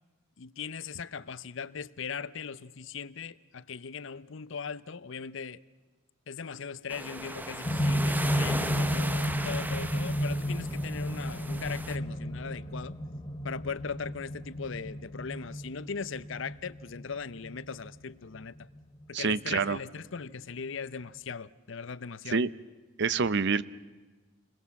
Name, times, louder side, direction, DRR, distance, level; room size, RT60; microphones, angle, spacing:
voice 1, 0.4-5.6 6.3-13.0 13.4-18.7 19.1-22.4, left 5 dB, 65° left, 0.7 m, -39 dB
sound 1, 6.9-12.0, right 1 dB, 10° right, 0.9 m, -37 dB
sound 2, 7.6-19.8 20.7-20.8, equal, 25° left, 1.1 m, -33 dB
voice 2, 19.1-19.8 22.3-22.5 23.0-23.6, right 5 dB, 60° right, 0.7 m, -26 dB
29.0 x 21.0 x 7.2 m
head